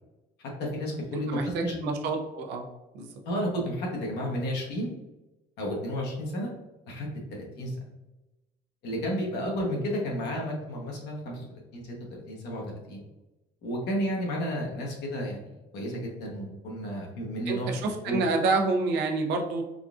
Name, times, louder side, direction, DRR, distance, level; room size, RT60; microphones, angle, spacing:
voice 1, 0.4-1.8 3.2-4.9 5.6-6.5 6.9-7.8 8.8-13.0 13.6-15.4 15.7-18.2, equal, 80° left, -1 dB, 1.0 m, -32 dB
voice 2, 1.3-2.7 2.9-3.1 17.5-19.6, right 3 dB, 90° right, 3 dB, 0.6 m, -28 dB
3.7 x 2.4 x 2.4 m, 1.0 s
cardioid pair, 110°, 17 cm